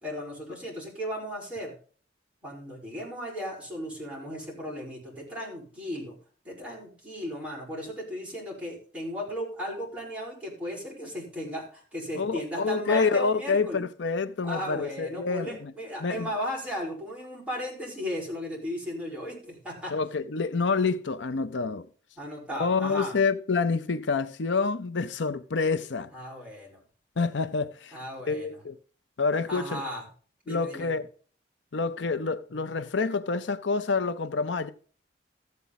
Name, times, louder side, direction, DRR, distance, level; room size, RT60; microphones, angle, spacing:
voice 1, 0.0-1.7 2.4-6.2 6.5-13.8 14.4-19.9 22.2-23.1 26.1-26.8 27.9-28.6 29.5-30.0 30.4-30.9, equal, 5° right, 5.2 m, -36 dB
voice 2, 12.1-15.7 16.0-16.3 19.9-21.9 22.5-26.1 27.2-28.0 28.3-28.8 29.2-29.8 30.5-31.1 31.7-34.7, left 4 dB, 80° left, 0.7 m, -27 dB
14.0 x 8.3 x 4.1 m
head